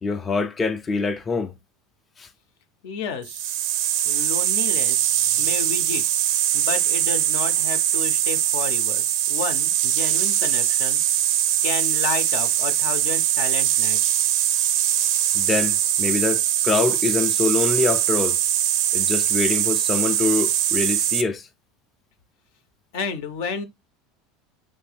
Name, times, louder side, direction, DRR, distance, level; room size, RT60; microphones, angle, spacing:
voice 1, 0.0-1.6 2.2-2.3 15.3-18.4 18.9-21.5, left 4 dB, 25° left, 0.4 m, -24 dB
voice 2, 2.8-3.4 4.0-6.0 6.5-11.0 11.6-14.2 22.9-23.6, left 5 dB, 75° left, 0.6 m, -31 dB
sound 1, 3.3-21.2, right 11 dB, 70° right, 0.4 m, -22 dB
3.2 x 2.6 x 3.4 m
supercardioid pair, 105°, 0 cm